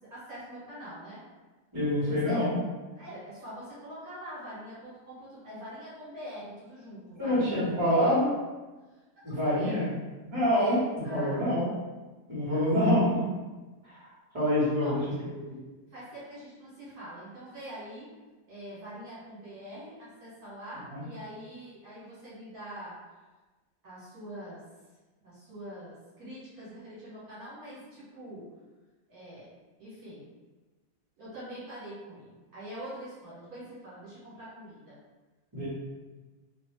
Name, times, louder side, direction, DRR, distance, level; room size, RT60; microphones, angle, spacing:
voice 1, 0.0-1.2 2.1-2.4 2.9-8.3 9.3-9.8 10.5-11.6 12.5-13.0 14.8-15.1 15.9-18.1 18.5-22.9 23.8-24.6 25.2-28.5 29.1-29.5 29.8-30.3 31.2-35.0, equal, 60° right, -10 dB, 1.8 m, -44 dB
voice 2, 1.7-2.6 7.2-8.3 9.2-9.9 10.2-11.7 12.3-13.2 13.8-14.0 14.3-15.0 15.5-15.6 20.9-21.0 35.5-35.7, left 1 dB, 20° right, -11 dB, 1.3 m, -26 dB
3.1 x 2.8 x 3.2 m, 1.2 s
omnidirectional pair, 1.8 m